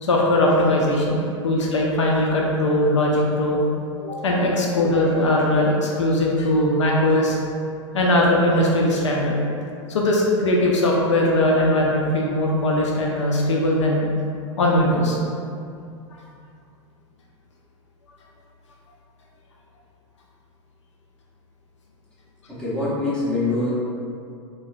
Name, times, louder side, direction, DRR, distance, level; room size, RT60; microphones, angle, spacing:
voice 1, 0.0-3.6 4.0-7.4 7.9-9.3 9.9-14.1 14.6-15.2, left 1 dB, 70° left, -2 dB, 0.4 m, -20 dB
voice 2, 22.5-23.7, left 2 dB, 5° left, -10 dB, 1.0 m, -24 dB
3.5 x 2.1 x 2.6 m, 2.4 s
figure-of-eight pair, 90°, 16 cm